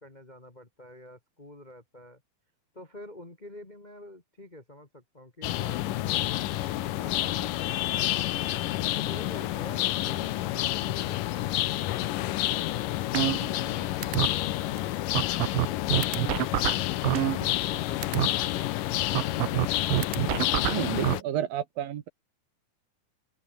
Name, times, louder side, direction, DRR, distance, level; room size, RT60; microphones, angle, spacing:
voice 1, 0.0-2.2 2.7-6.4 6.8-8.2 8.8-12.9, left 1 dB, 20° left, 1.1 m, -48 dB
sound 1, 5.4-21.2, left 15 dB, 70° left, 2.1 m, -29 dB
sound 2, 13.1-13.7 14.0-14.3 14.8-14.9 15.1-17.7 18.0-18.3 19.1-21.1, right 19 dB, 85° right, 2.0 m, -26 dB
voice 2, 20.7-22.1, right 11 dB, 65° right, 3.0 m, -31 dB
open air
omnidirectional pair, 4.7 m